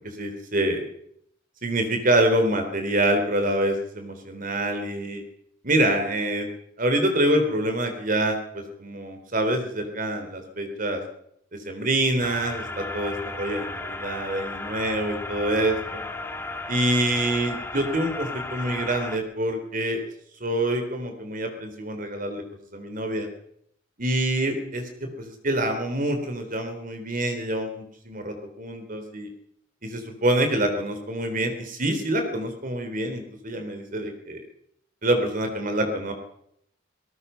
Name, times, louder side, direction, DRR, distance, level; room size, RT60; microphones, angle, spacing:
voice 1, 0.1-0.8 1.6-5.2 5.6-6.5 6.8-11.0 11.5-16.0 16.7-20.0 20.4-22.4 22.7-23.3 24.0-29.3 29.8-34.4 35.0-36.1, right 1 dB, 45° right, 5 dB, 3.4 m, -26 dB
sound 1, 12.2-19.2, left 2 dB, 10° left, 2.5 m, -34 dB
25.0 x 19.5 x 5.7 m, 0.74 s
head